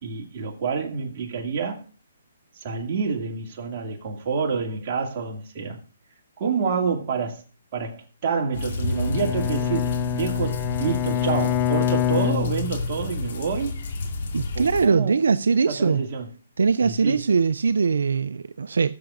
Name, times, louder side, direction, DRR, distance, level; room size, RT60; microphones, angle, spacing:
voice 1, 0.0-1.8 2.6-5.8 6.4-7.4 7.7-13.8 14.6-15.2 15.7-16.3 16.8-17.3, right 5 dB, 40° right, 2.3 m, -28 dB
sound 1, 8.5-14.9, left 3 dB, 55° left, 2.4 m, -31 dB
Bowed string instrument, 8.8-13.2, left 11 dB, 25° left, 0.4 m, -26 dB
voice 2, 14.3-16.0 16.6-18.9, right 5 dB, 80° right, 0.4 m, -21 dB
21.0 x 7.0 x 2.5 m
hypercardioid pair, 150°, 0 cm